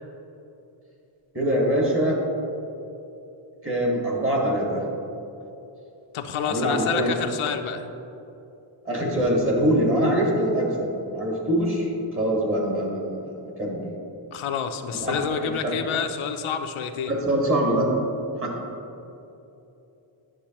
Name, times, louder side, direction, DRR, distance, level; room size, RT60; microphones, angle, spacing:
voice 1, 1.3-2.2 3.6-4.8 6.5-7.1 8.8-13.8 14.9-15.7 17.1-17.9 18.4-18.6, right 1 dB, 25° right, -2 dB, 1.7 m, -24 dB
voice 2, 6.1-7.9 14.3-17.2, left 7 dB, 85° left, 6 dB, 0.6 m, -28 dB
10.0 x 6.6 x 2.9 m, 2.9 s
wide cardioid pair, 110°, 48 cm